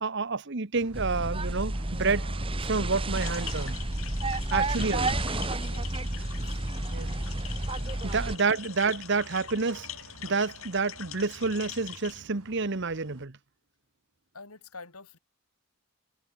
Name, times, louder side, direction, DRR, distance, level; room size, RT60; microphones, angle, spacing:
voice 1, 0.0-2.3 2.6-3.8 4.5-5.1 6.9-7.1 8.0-9.9 10.2-13.3, right 4 dB, 55° right, 1.1 m, -29 dB
sound 1, 0.7-13.3, right 2 dB, 85° right, 6.3 m, -52 dB
sound 2, 0.9-8.4, right 2 dB, 25° right, 1.6 m, -31 dB
sound 3, 3.1-12.2, left 10 dB, 65° left, 1.8 m, -44 dB
voice 2, 5.0-6.6 7.9-8.0 14.3-15.2, left 3 dB, 85° left, 5.4 m, -48 dB
head